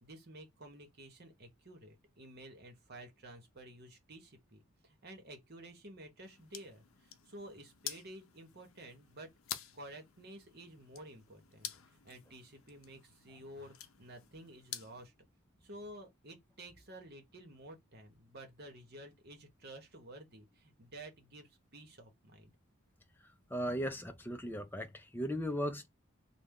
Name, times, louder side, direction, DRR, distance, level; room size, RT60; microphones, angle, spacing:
voice 1, 0.0-9.3 9.7-15.1 15.6-22.5, right 1 dB, 45° right, 1.0 m, -52 dB
sound 1, 6.2-15.1, left 10 dB, 70° left, 0.5 m, -49 dB
voice 2, 23.5-25.9, equal, 10° left, 0.5 m, -37 dB
3.3 x 2.3 x 3.6 m
head